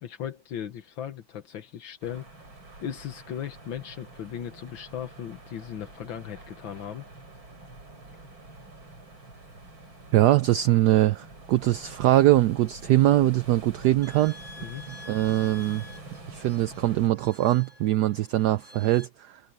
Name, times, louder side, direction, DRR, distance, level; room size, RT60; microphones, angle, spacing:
voice 1, 0.0-2.3 2.8-7.0 14.6-14.8, left 9 dB, 80° left, 1.9 m, -37 dB
sound 1, 2.0-17.1, right 2 dB, 90° right, 7.1 m, -46 dB
voice 2, 10.1-14.4 15.1-15.9 16.3-19.4, right 14 dB, 70° right, 1.0 m, -22 dB
sound 2, 14.0-19.1, left 2 dB, 40° right, 7.9 m, -48 dB
omnidirectional pair, 2.1 m